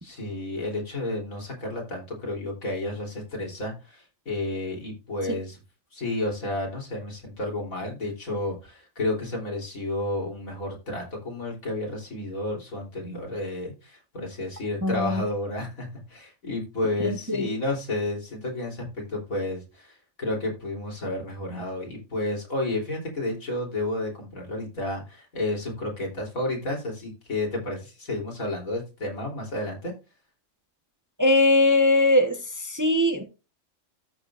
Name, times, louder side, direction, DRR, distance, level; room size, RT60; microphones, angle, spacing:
voice 1, 0.0-5.6 5.9-29.9, left 2 dB, 85° left, 4.0 m, -31 dB
voice 2, 14.8-15.2 17.0-17.5 31.2-33.2, left 2 dB, 15° right, 1.0 m, -21 dB
13.5 x 6.9 x 2.5 m
omnidirectional pair, 1.4 m